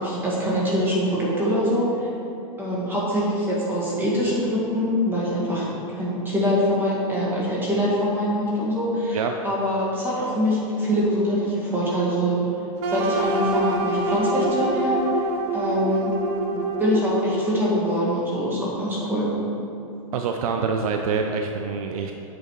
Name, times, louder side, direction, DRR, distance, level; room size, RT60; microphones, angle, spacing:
voice 1, 0.0-2.1 2.6-12.5 12.9-15.2 15.5-16.1 16.5-19.4, equal, 10° right, -6 dB, 1.8 m, -24 dB
sound 1, 12.8-17.8, right 2 dB, 40° right, 0.9 m, -26 dB
voice 2, 20.1-22.1, right 5 dB, 75° right, 4 dB, 0.5 m, -25 dB
7.9 x 5.0 x 4.7 m, 2.9 s
supercardioid pair, 145°, 18 cm